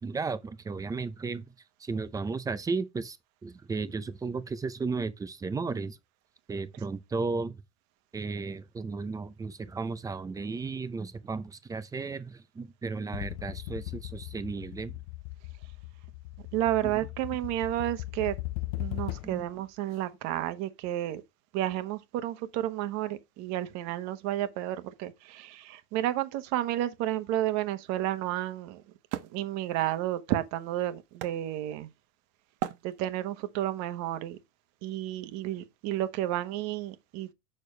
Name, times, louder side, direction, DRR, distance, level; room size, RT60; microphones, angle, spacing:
voice 1, 0.0-1.4 1.8-3.2 3.4-6.0 6.5-7.6 8.1-14.9 16.8-16.9 19.2-19.4, right 4 dB, 10° right, 0.5 m, -34 dB
sound 1, 13.1-19.5, left 18 dB, 80° left, 0.5 m, -38 dB
voice 2, 16.5-18.4 18.8-21.2 21.5-28.8 29.3-31.9 32.8-34.4 34.8-37.3, right 13 dB, 50° right, 1.2 m, -31 dB
Wood, 27.4-32.1 32.6-33.5, right 12 dB, 85° right, 1.2 m, -40 dB
6.7 x 6.5 x 3.3 m
supercardioid pair, 155°, 34 cm